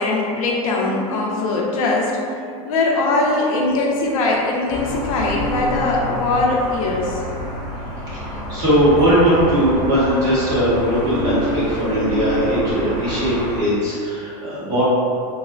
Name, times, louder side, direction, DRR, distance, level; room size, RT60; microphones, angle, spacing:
voice 1, 0.0-2.1 2.6-7.2, left 2 dB, 75° left, -2 dB, 0.6 m, -21 dB
sound 1, 0.8-13.1, equal, 70° right, 0.6 m, -34 dB
sound 2, 4.7-13.6, left 1 dB, ahead, 0.3 m, -30 dB
voice 2, 8.1-14.8, equal, 20° right, -11 dB, 1.0 m, -19 dB
4.1 x 2.0 x 2.4 m, 2.4 s
supercardioid pair, 170°, 18 cm